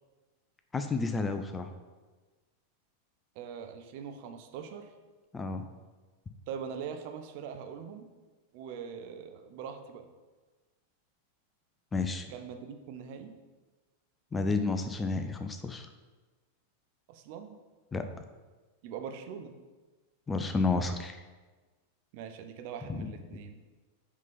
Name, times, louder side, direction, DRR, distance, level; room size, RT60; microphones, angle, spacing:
voice 1, 0.7-1.7 5.3-5.6 11.9-12.3 14.3-15.9 17.9-18.0 20.3-21.2 22.9-23.1, left 3 dB, 15° left, 7 dB, 0.6 m, -31 dB
voice 2, 3.3-4.9 6.5-8.1 8.5-10.1 12.3-13.3 17.1-17.6 18.8-19.6 22.1-23.6, right 7 dB, 45° right, 6 dB, 0.8 m, -42 dB
6.6 x 5.2 x 5.2 m, 1.3 s
figure-of-eight pair, 90°, 0 cm